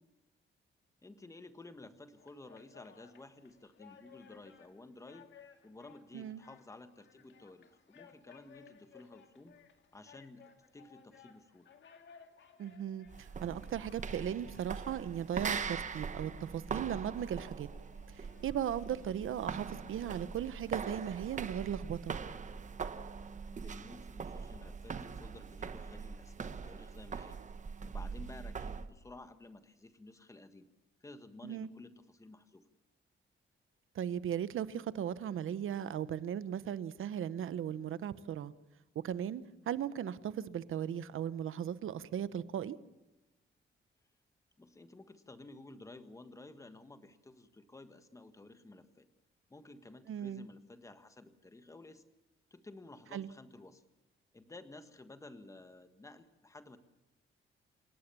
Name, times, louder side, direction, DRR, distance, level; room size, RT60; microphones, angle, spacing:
voice 1, 1.0-5.3 5.6-9.5 9.9-11.7 18.9-19.0 23.4-27.4 27.9-30.7 31.0-32.7 44.6-49.1 49.5-52.0 52.5-53.8 54.3-56.8, left 2 dB, 15° left, 9 dB, 1.5 m, -53 dB
sound 1, 2.2-21.4, left 7 dB, 60° left, 2.2 m, -61 dB
voice 2, 12.6-17.7 18.1-22.2 31.4-31.7 33.9-38.5 39.0-42.8 50.1-50.5 53.1-53.3, right 9 dB, 75° right, 15 dB, 1.1 m, -37 dB
sound 2, 13.1-28.9, right 5 dB, 35° right, 1.1 m, -42 dB
28.5 x 18.0 x 6.9 m, 0.99 s
wide cardioid pair, 180°, 21 cm